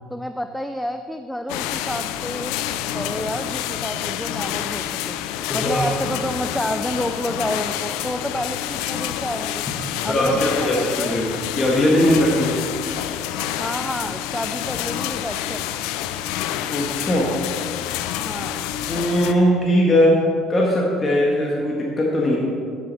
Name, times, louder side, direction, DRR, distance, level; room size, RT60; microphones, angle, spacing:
voice 1, 0.1-2.6 2.9-5.2 5.5-9.7 10.0-11.2 13.6-15.7 18.2-18.7, equal, 5° left, 8 dB, 0.4 m, -29 dB
sound 1, 1.5-19.3, left 11 dB, 75° left, 0.4 m, -28 dB
voice 2, 5.5-5.8 10.1-12.6 16.7-17.3 18.9-20.2 20.5-22.4, equal, 30° left, -3 dB, 1.7 m, -19 dB
11.5 x 6.6 x 4.2 m, 2.2 s
hypercardioid pair, 70°, 0 cm